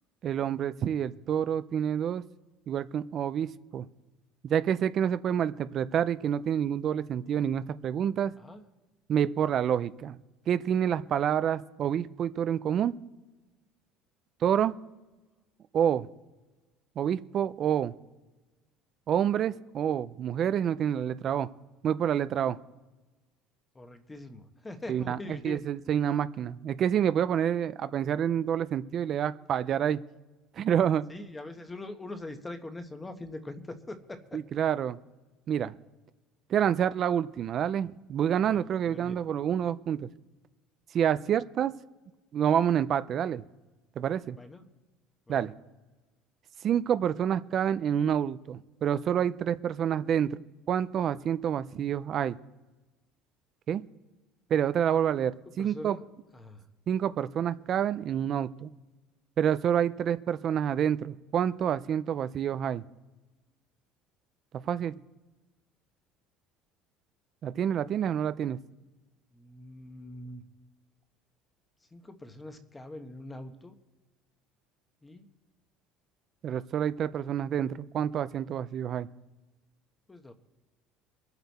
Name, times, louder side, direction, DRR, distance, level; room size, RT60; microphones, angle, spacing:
voice 1, 0.2-2.2 2.7-3.8 4.4-8.3 9.1-10.2 10.5-12.9 14.4-14.8 15.7-16.1 17.0-17.9 19.1-21.5 21.8-22.6 24.9-30.0 30.6-31.0 34.3-35.0 35.5-35.7 36.5-40.1 40.9-41.7 42.3-43.4 44.0-44.4 45.3-45.5 46.6-50.4 50.7-52.4 53.7-53.8 54.5-56.0 56.9-58.7 59.4-62.8 64.7-64.9 67.4-68.6 76.4-79.1, right 9 dB, 40° right, 14 dB, 0.4 m, -28 dB
voice 2, 23.7-25.6 31.1-34.4 38.4-39.2 44.4-44.6 45.3-45.4 55.6-56.1 56.3-56.6 69.3-70.4 71.9-73.7 75.0-75.2 80.1-80.3, left 2 dB, 10° left, 8 dB, 1.1 m, -43 dB
23.5 x 7.9 x 4.2 m, 1.2 s
cardioid pair, 150°, 0 cm